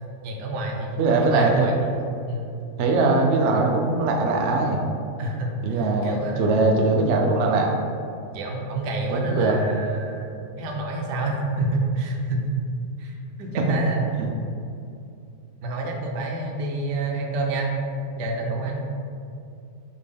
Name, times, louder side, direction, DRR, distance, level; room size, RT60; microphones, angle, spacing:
voice 1, 0.2-2.0 2.3-2.5 5.2-6.7 7.2-7.4 8.3-12.6 13.0-13.1 13.4-14.1 15.6-17.7 18.1-18.8, right 2 dB, 90° right, 0 dB, 1.3 m, -28 dB
voice 2, 1.0-1.7 2.8-4.8 5.6-7.8 9.1-9.6 13.7-13.8 14.2-14.3, right 3 dB, 70° right, 0 dB, 0.6 m, -21 dB
4.4 x 3.0 x 3.3 m, 2.6 s
omnidirectional pair, 1.7 m